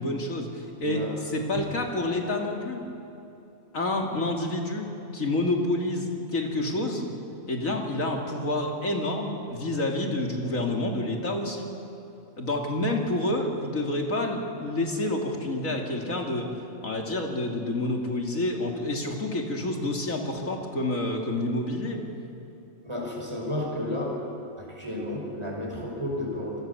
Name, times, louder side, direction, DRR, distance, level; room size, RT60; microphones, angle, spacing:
voice 1, 0.0-2.8 3.7-4.9 5.1-7.1 7.5-11.7 12.4-16.5 16.8-22.0, left 2 dB, 80° left, 1 dB, 3.1 m, -28 dB
voice 2, 0.8-1.1 1.5-1.6 15.4-15.5 22.8-24.1 24.6-26.6, left 1 dB, 20° right, -2 dB, 5.9 m, -32 dB
28.5 x 22.5 x 7.1 m, 2.8 s
omnidirectional pair, 1.4 m